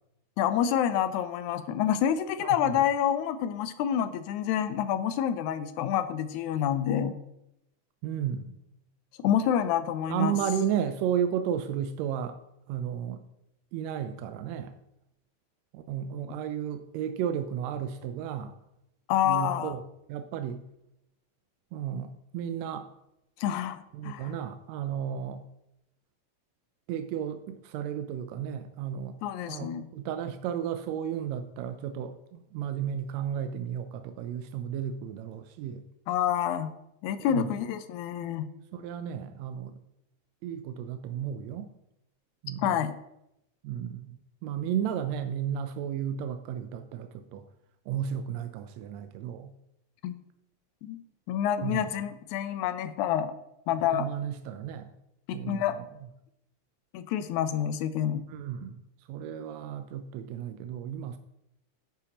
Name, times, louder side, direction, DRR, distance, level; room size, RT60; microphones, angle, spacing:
voice 1, 0.4-7.1 9.2-10.4 16.3-16.4 19.1-19.7 23.4-24.3 29.2-29.9 36.1-36.7 37.0-38.5 42.6-42.9 50.0-50.2 50.8-51.0 51.3-53.3 53.7-54.1 55.3-55.8 56.9-58.2, left 10 dB, 85° left, 11 dB, 2.0 m, -28 dB
voice 2, 8.0-8.6 10.1-12.4 12.7-13.2 13.7-14.7 15.7-18.5 19.2-19.8 20.1-20.6 21.7-22.9 23.9-25.4 26.9-29.1 29.5-35.8 37.2-37.5 38.7-39.7 40.4-41.7 42.4-42.7 43.6-44.2 44.4-47.5 47.9-49.5 51.6-51.9 53.9-54.9 55.3-55.8 58.3-58.8 59.1-61.2, right 9 dB, 80° right, 8 dB, 1.6 m, -33 dB
10.5 x 9.0 x 2.9 m, 0.85 s
omnidirectional pair, 3.4 m